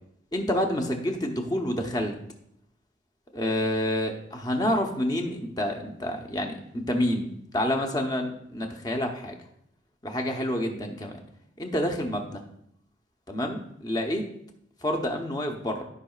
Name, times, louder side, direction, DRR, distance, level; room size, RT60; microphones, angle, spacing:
voice 1, 0.3-2.2 3.3-9.4 10.0-11.2 11.6-12.4 13.3-14.3 14.8-15.8, left 1 dB, 20° left, 2 dB, 0.9 m, -28 dB
13.5 x 5.4 x 2.4 m, 0.72 s
head